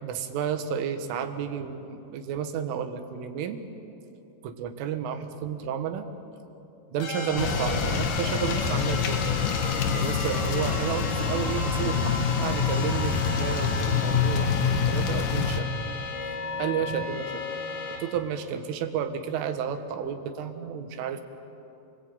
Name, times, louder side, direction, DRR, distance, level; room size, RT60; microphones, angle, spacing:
voice 1, 0.0-3.6 4.4-6.1 6.9-9.2 9.9-15.7 16.6-17.4 17.9-21.2, right 8 dB, 80° right, 7 dB, 3.9 m, -31 dB
sound 1, 7.0-18.0, left 4 dB, 65° left, 5.4 m, -34 dB
sound 2, 7.4-15.6, left 6 dB, 85° left, 1.7 m, -26 dB
29.0 x 20.5 x 8.9 m, 2.9 s
omnidirectional pair, 5.7 m